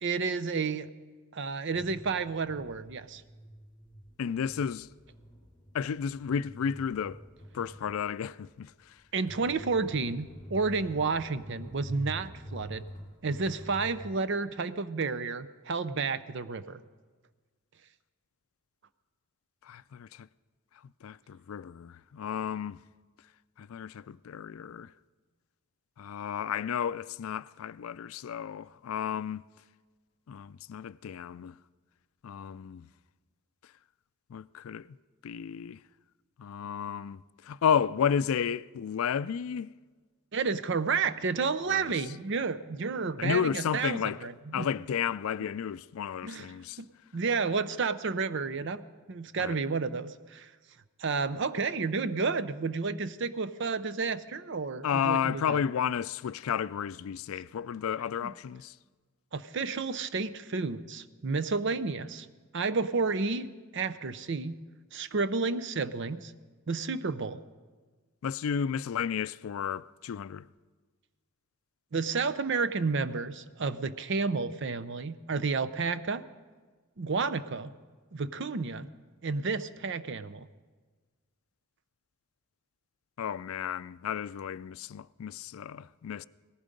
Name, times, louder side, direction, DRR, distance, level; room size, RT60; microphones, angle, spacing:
voice 1, 0.0-0.9 1.3-3.2 9.1-12.8 13.2-16.8 40.3-44.7 46.2-46.5 46.8-50.5 51.0-55.6 58.2-58.3 59.3-62.3 62.5-64.6 64.9-66.3 66.7-67.4 71.9-76.2 77.0-77.7 78.1-78.9 79.2-80.5, right 4 dB, 55° right, 0.6 m, -31 dB
sound 1, 1.7-14.1, equal, 20° left, 4.4 m, -47 dB
voice 2, 4.2-4.9 5.7-7.2 7.5-9.0 19.6-20.3 21.0-22.8 23.6-24.9 26.0-29.4 30.3-31.6 32.2-32.9 34.3-34.9 35.2-35.8 36.4-39.7 41.7-41.9 43.2-44.2 44.5-46.8 49.4-49.6 54.8-58.7 68.2-70.5 83.2-86.2, left 7 dB, 80° left, 0.4 m, -32 dB
18.0 x 15.0 x 5.2 m
head